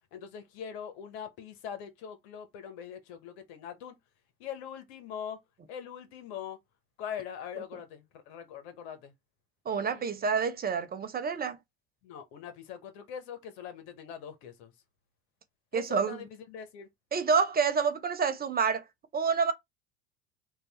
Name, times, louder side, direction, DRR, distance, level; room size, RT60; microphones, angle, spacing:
voice 1, 0.1-3.9 4.4-5.4 5.7-6.6 7.0-9.1 9.7-10.1 12.0-14.7 15.7-16.9, left 8 dB, 70° left, 1.3 m, -42 dB
voice 2, 9.7-11.6 15.7-16.2 17.1-18.8 19.1-19.5, right 5 dB, 25° right, 0.7 m, -28 dB
3.3 x 2.7 x 4.1 m
hypercardioid pair, 75°, 34 cm